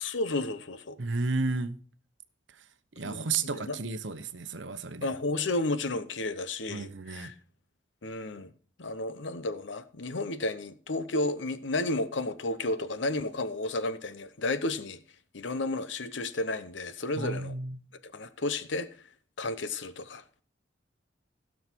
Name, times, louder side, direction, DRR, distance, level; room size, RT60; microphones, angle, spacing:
voice 1, 0.0-1.0 3.0-3.3 3.5-3.8 5.0-7.3 8.0-8.5 8.8-15.0 15.3-17.5 18.0-19.0 19.4-20.2, left 2 dB, 70° left, 0.8 m, -32 dB
voice 2, 1.0-1.8 2.5-2.6 3.0-5.1 6.7-7.3 17.1-17.8, right 3 dB, 75° right, 0.9 m, -32 dB
16.0 x 6.5 x 4.5 m
head